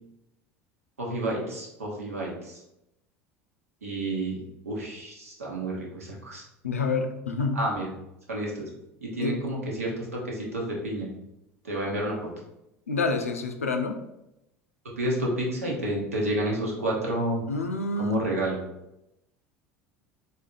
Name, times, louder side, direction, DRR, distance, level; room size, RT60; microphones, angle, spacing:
voice 1, 1.0-2.6 3.8-4.4 4.6-6.4 7.5-7.9 8.3-8.7 9.0-11.1 11.6-12.3 15.0-17.4 17.9-18.6, right 1 dB, 85° right, -2 dB, 1.1 m, -30 dB
voice 2, 6.6-7.6 9.2-9.4 12.9-14.0 17.5-18.2, left 3 dB, 90° left, 4 dB, 0.5 m, -28 dB
4.1 x 2.7 x 3.9 m, 0.87 s
hypercardioid pair, 75°, 7 cm